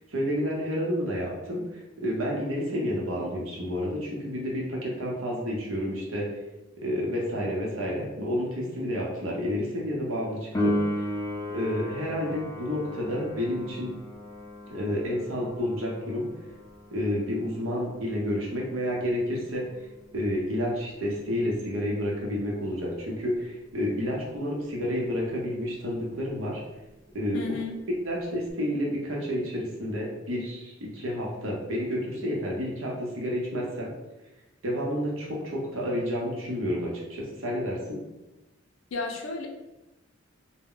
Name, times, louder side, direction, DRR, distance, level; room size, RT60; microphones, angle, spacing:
voice 1, 0.0-6.3 6.8-10.7 11.5-13.9 14.7-16.3 16.9-19.7 20.1-26.6 27.1-27.4 28.0-33.9 34.6-38.0, equal, 90° right, -3 dB, 0.8 m, -30 dB
Piano, 10.5-20.9 28.5-28.6, equal, 15° left, 0.4 m, -35 dB
voice 2, 27.3-27.7 38.9-39.5, left 4 dB, 75° left, 1 dB, 0.5 m, -32 dB
2.1 x 2.1 x 3.7 m, 1.0 s
head